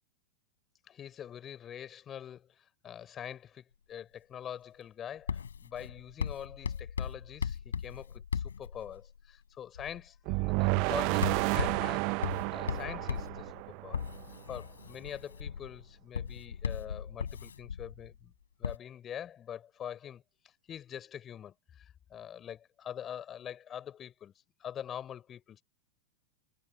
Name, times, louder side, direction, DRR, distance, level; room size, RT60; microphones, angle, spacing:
voice 1, 0.9-12.1 12.5-13.5 13.8-14.0 14.5-18.3 18.6-20.2 20.7-24.3 24.6-25.6, left 9 dB, 25° left, 4.9 m, -44 dB
Writing, 5.3-9.2 9.7-10.1 10.8-18.1 18.6-18.8, left 7 dB, 70° left, 4.2 m, -38 dB
sound 1, 10.3-14.3, right 32 dB, 45° right, 0.7 m, -31 dB
figure-of-eight pair, 90°, 0 cm